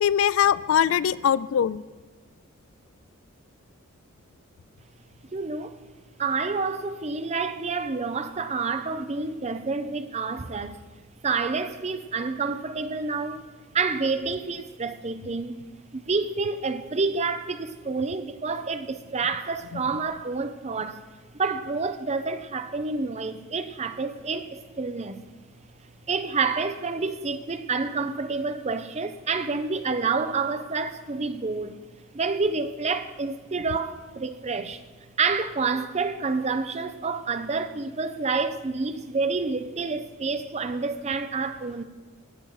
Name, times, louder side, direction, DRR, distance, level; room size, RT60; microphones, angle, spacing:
voice 1, 0.0-1.8 19.7-19.8, left 8 dB, 65° left, 0.3 m, -22 dB
voice 2, 5.3-5.8 6.2-10.8 11.2-13.5 13.7-15.6 15.9-21.0 21.3-25.2 26.1-31.8 32.1-34.8 35.2-41.8, right 4 dB, 30° right, 0.6 m, -28 dB
18.0 x 6.3 x 4.7 m
head